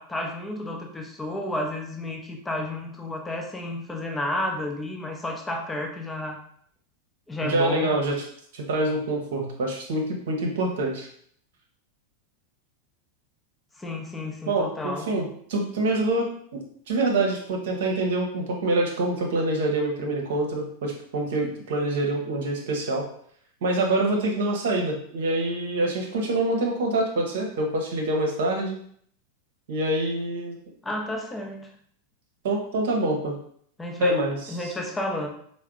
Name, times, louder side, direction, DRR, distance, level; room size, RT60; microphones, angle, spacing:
voice 1, 0.0-6.4 7.3-8.0 13.8-15.1 30.8-31.7 33.8-34.2 34.5-35.3, left 1 dB, 10° left, 2 dB, 0.8 m, -31 dB
voice 2, 7.4-8.2 8.5-11.1 14.5-16.3 16.5-23.1 23.6-28.8 29.7-30.6 32.4-33.4 34.0-34.7, right 2 dB, 55° right, 1 dB, 0.9 m, -26 dB
4.5 x 2.1 x 3.6 m, 0.62 s
figure-of-eight pair, 90°, 0 cm